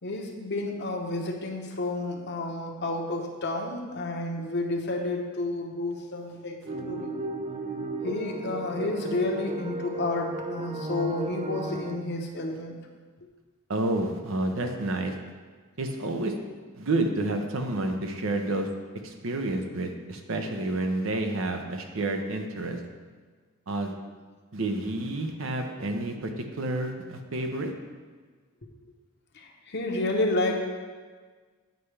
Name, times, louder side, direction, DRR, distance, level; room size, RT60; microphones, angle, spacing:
voice 1, 0.0-7.2 8.0-12.7 29.3-30.8, left 2 dB, 55° left, 1 dB, 0.9 m, -30 dB
sound 1, 6.6-12.0, right 2 dB, 30° right, 0.4 m, -34 dB
voice 2, 13.7-15.1 15.8-16.3 16.7-18.7 19.0-22.8 23.7-23.9 24.5-27.7, right 2 dB, 65° right, 4 dB, 0.7 m, -29 dB
9.1 x 5.6 x 3.3 m, 1.5 s
head